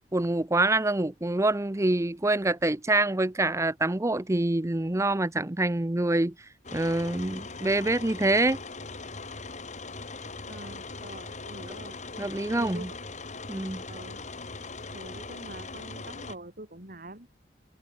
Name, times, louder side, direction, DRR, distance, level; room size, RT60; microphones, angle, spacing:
voice 1, 0.1-6.3 6.7-8.6 12.2-12.9 13.5-13.8, right 2 dB, 15° right, 0.7 m, -26 dB
sound 1, 6.6-16.4, left 3 dB, 45° left, 4.1 m, -40 dB
voice 2, 10.5-12.0 12.6-12.9 13.9-14.2 14.9-17.3, right 1 dB, 50° right, 5.4 m, -44 dB
head